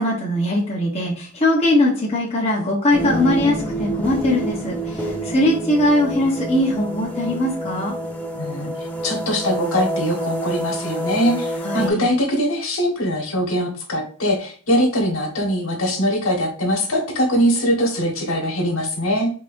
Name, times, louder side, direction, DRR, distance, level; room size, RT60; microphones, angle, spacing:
voice 1, 0.0-7.9 11.6-12.1, left 1 dB, 30° left, -4 dB, 1.0 m, -20 dB
sound 1, 2.9-11.9, right 1 dB, 5° left, 0.5 m, -28 dB
voice 2, 8.3-8.7 9.0-19.3, equal, 70° left, 0 dB, 1.4 m, -22 dB
5.5 x 2.8 x 2.6 m, 0.42 s
head